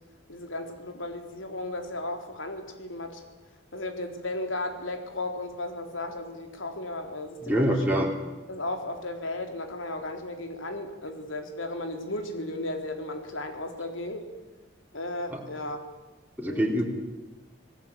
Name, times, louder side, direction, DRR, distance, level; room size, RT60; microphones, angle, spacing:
voice 1, 0.3-3.2 3.7-7.8 8.5-14.3 14.9-15.8 16.4-16.8, left 2 dB, 85° left, 5 dB, 3.8 m, -35 dB
voice 2, 7.5-8.1 15.3-15.4 16.4-16.8, equal, 10° right, -1 dB, 3.6 m, -25 dB
27.0 x 19.0 x 8.8 m, 1.1 s
head